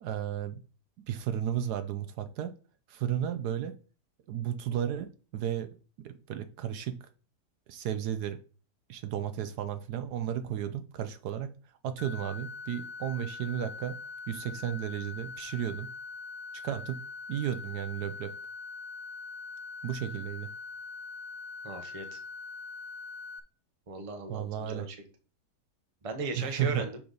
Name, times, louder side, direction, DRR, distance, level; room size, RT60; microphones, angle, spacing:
voice 1, 0.0-0.6 1.1-2.5 2.9-3.8 4.3-5.7 6.0-7.0 7.7-8.4 8.9-11.5 11.8-14.0 14.3-15.9 16.6-17.0 17.3-18.3 19.8-20.5 24.3-24.9 26.4-26.9, right 10 dB, 75° right, 11 dB, 1.1 m, -33 dB
sound 1, 12.0-23.4, left 4 dB, 90° left, 1.4 m, -43 dB
voice 2, 21.6-22.2 23.9-25.0 26.0-27.0, right 4 dB, 30° right, 6 dB, 0.6 m, -37 dB
5.8 x 5.0 x 4.0 m, 0.37 s
omnidirectional pair, 1.9 m